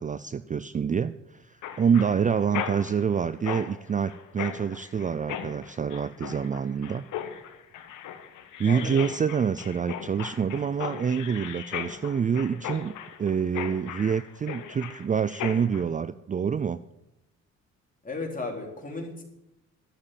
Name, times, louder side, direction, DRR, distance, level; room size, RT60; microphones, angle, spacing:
voice 1, 0.0-7.0 8.6-12.9 13.2-16.8, right 7 dB, 25° right, 14 dB, 0.4 m, -27 dB
Mechanisms, 1.6-15.8, left 9 dB, 85° left, 1.4 m, -38 dB
voice 2, 8.7-9.0 18.0-19.2, left 3 dB, 25° left, 1 dB, 3.8 m, -34 dB
11.5 x 7.7 x 9.0 m, 0.86 s
cardioid pair, 90°, 30 cm